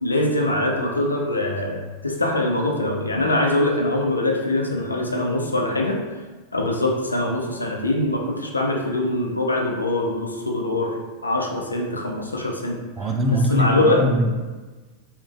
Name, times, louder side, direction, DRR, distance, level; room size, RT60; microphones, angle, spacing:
voice 1, 0.0-6.1 6.5-14.2, left 1 dB, 80° left, 0 dB, 0.3 m, -23 dB
voice 2, 13.0-14.4, left 1 dB, 20° right, 2 dB, 0.3 m, -21 dB
2.8 x 2.4 x 2.3 m, 1.3 s
figure-of-eight pair, 90°, 0 cm